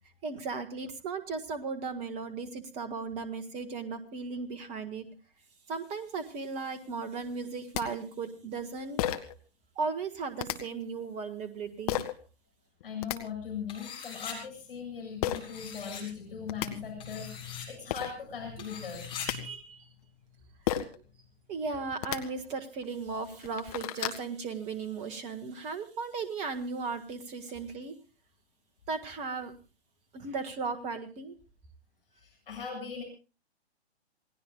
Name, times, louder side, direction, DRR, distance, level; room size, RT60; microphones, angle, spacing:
voice 1, 0.2-5.1 5.7-9.0 9.7-12.0 19.3-19.9 20.7-20.8 21.5-28.0 28.9-29.5 30.1-31.4, right 4 dB, 20° right, 9 dB, 1.6 m, -36 dB
sound 1, 7.4-7.5 7.7-7.8 9.0-9.4 10.4-10.6 11.9-12.1 12.8-13.2 15.2-15.4 16.2-16.3 16.5-16.7 17.6-17.7 17.9-18.1 18.9-19.4 20.7-21.0 21.9-22.2 22.8-22.9 23.3-24.2, left 12 dB, 35° left, 1.6 m, -32 dB
voice 2, 12.8-19.5 32.1-33.0, left 6 dB, 55° left, 2 dB, 7.8 m, -39 dB
sound 2, 13.7-14.4 15.3-16.0 17.0-17.7 18.6-19.3, left 7 dB, 15° left, 5.0 m, -42 dB
28.0 x 18.0 x 2.3 m, 0.33 s
figure-of-eight pair, 125°, 33 cm